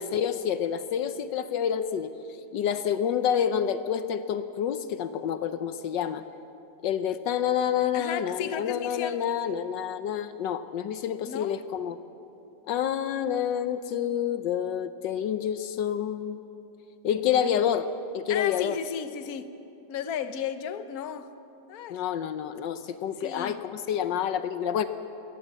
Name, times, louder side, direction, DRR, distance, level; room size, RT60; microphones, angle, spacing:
voice 1, 0.0-2.1 2.5-6.2 6.8-12.0 12.7-16.4 17.0-17.9 18.1-18.8 21.9-24.8, left 9 dB, 80° left, 10 dB, 1.4 m, -28 dB
voice 2, 7.9-9.2 11.2-11.6 17.2-17.5 18.3-19.5 19.9-21.3 21.7-22.0 23.2-23.6, left 8 dB, 60° left, 10 dB, 1.3 m, -34 dB
21.5 x 18.0 x 7.5 m, 2.7 s
omnidirectional pair, 2.0 m